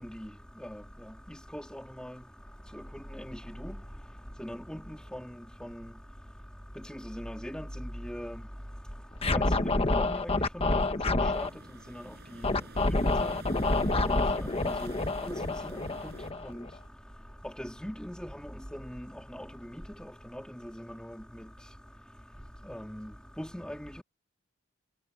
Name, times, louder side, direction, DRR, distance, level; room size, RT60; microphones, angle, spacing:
voice 1, 1.3-2.2 2.7-2.8 3.1-3.7 4.4-5.3 5.6-5.8 6.9-8.4 9.3-11.5 12.0-12.1 13.0-13.5 13.7-13.9 14.1-14.9 15.2-16.1 16.4-16.6 17.6-19.1 19.3-19.5 19.7-20.4 20.8-21.2 22.7-23.1 23.4-24.0, equal, 5° left, 3.0 m, -40 dB
Scratching (performance technique), 9.2-11.5 12.4-16.7, left 2 dB, 30° left, 1.3 m, -28 dB
sound 1, 11.3-16.3, right 2 dB, 55° right, 5.4 m, -49 dB
head